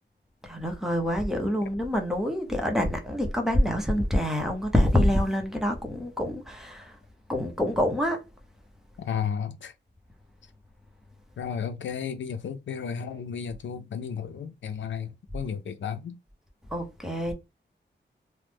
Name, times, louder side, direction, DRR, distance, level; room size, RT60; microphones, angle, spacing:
voice 1, 0.4-7.0 7.3-8.2 16.7-17.3, left 1 dB, ahead, 0.8 m, -26 dB
voice 2, 9.0-9.7 11.4-16.2, left 7 dB, 85° left, 0.4 m, -33 dB
3.0 x 2.1 x 3.3 m
wide cardioid pair, 140°, 19 cm